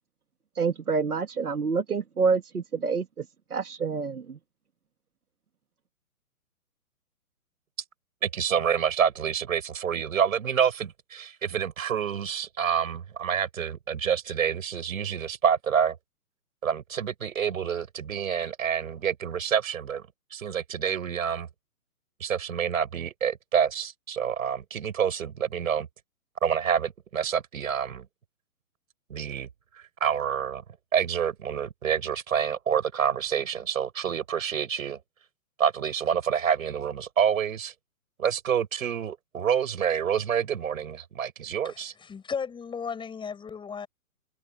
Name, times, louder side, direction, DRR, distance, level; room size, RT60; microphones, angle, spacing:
voice 1, 0.6-3.2 3.5-4.4, right 5 dB, 80° right, 2.1 m, -27 dB
voice 2, 8.2-16.0 16.6-20.0 20.3-21.5 22.2-25.9 26.4-28.1 29.1-29.5 29.7-30.6 30.9-35.0 35.6-37.7 38.2-41.9, right 8 dB, 65° right, 6.3 m, -27 dB
voice 3, 41.6-43.9, left 6 dB, 10° left, 7.5 m, -35 dB
open air
figure-of-eight pair, 130°, 44 cm